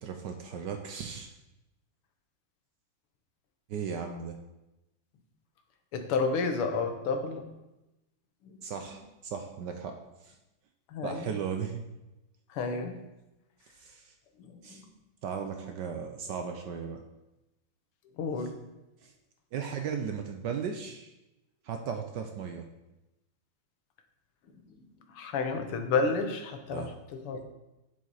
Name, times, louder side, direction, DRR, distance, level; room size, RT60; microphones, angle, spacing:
voice 1, 0.0-1.3 3.7-4.4 8.6-10.3 11.0-11.8 13.7-14.1 14.6-14.8 15.2-17.0 18.4-18.5 19.0-19.1 19.5-21.1 21.6-22.7 26.7-27.0, right 6 dB, 70° right, 5 dB, 1.1 m, -36 dB
voice 2, 5.9-7.4 10.9-11.2 12.6-13.0 14.7-14.8 18.2-18.5 25.2-27.4, left 4 dB, 85° left, 5 dB, 2.0 m, -30 dB
8.4 x 7.5 x 4.1 m, 0.98 s
omnidirectional pair, 2.4 m